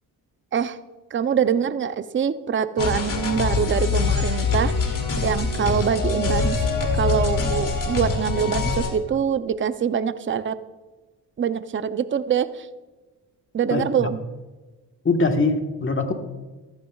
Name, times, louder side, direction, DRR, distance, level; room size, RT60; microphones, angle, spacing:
voice 1, 1.1-4.7 5.2-6.7 7.0-10.6 11.4-12.7 13.5-14.2, right 7 dB, 30° right, 12 dB, 0.6 m, -24 dB
sound 1, 2.8-8.9, left 4 dB, 50° left, 2.5 m, -24 dB
voice 2, 13.7-14.1 15.0-16.1, left 3 dB, 30° left, 5 dB, 1.4 m, -22 dB
15.0 x 13.0 x 2.4 m, 1.2 s
cardioid pair, 75°, 41 cm